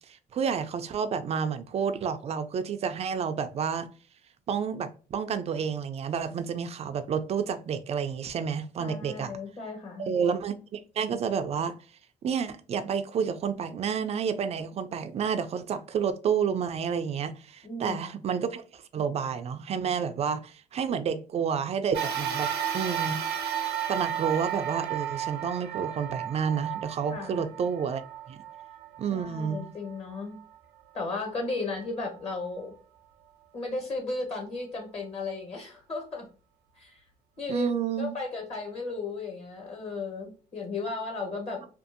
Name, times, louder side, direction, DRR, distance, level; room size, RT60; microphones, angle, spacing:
voice 1, 0.1-3.9 4.5-9.3 10.1-11.8 12.2-22.5 22.7-23.2 23.9-28.0 28.3-28.4 29.0-29.7 37.5-38.1, right 7 dB, 40° right, 0.4 m, -30 dB
voice 2, 8.8-10.2 17.6-18.0 27.1-27.4 29.1-30.4 30.9-32.7 33.5-36.3 36.8-37.0 37.4-37.7 38.0-41.6, left 3 dB, 35° left, 1.4 m, -35 dB
sound 1, 21.9-30.6 31.2-31.3 32.4-32.5, right 9 dB, 80° right, 0.7 m, -33 dB
2.6 x 2.5 x 2.5 m
cardioid pair, 110°, 17 cm